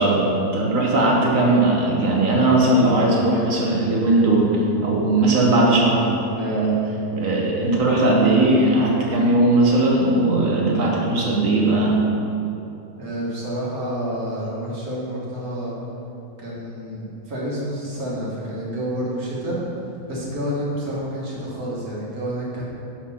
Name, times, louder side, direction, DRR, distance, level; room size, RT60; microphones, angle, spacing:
voice 1, 0.0-6.1 6.3-12.0, right 2 dB, 65° right, -2 dB, 1.3 m, -19 dB
voice 2, 13.0-15.7 16.4-19.6 20.1-22.6, equal, 80° right, -5 dB, 1.9 m, -29 dB
5.8 x 5.2 x 5.5 m, 2.8 s
omnidirectional pair, 1.5 m